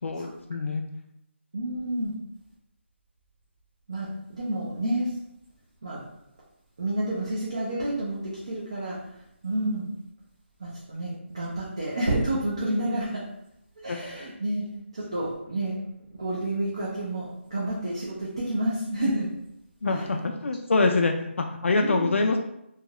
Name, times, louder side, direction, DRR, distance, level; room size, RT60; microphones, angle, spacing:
voice 1, 0.0-0.8 13.9-14.0 19.8-22.4, left 3 dB, 80° left, 3 dB, 0.4 m, -25 dB
voice 2, 1.5-2.1 3.9-5.1 5.8-6.0 6.8-8.2 8.4-9.0 9.4-9.9 10.6-13.2 13.8-14.7 14.9-15.8 16.2-19.3 19.9-20.1 21.8-22.1, right 1 dB, 25° right, -6 dB, 0.4 m, -29 dB
2.8 x 2.3 x 2.9 m, 0.80 s
hypercardioid pair, 180°, 7 cm